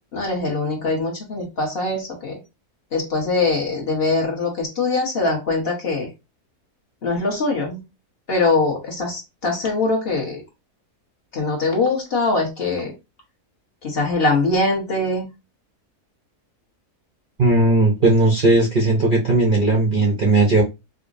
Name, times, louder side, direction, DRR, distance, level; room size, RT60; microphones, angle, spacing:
voice 1, 0.1-2.4 2.9-6.1 7.0-7.8 8.3-10.4 11.3-12.9 13.8-15.3, left 3 dB, 40° left, 1.2 m, -22 dB
voice 2, 17.4-20.6, right 2 dB, 50° right, 0.6 m, -17 dB
5.0 x 2.1 x 2.5 m
omnidirectional pair, 1.6 m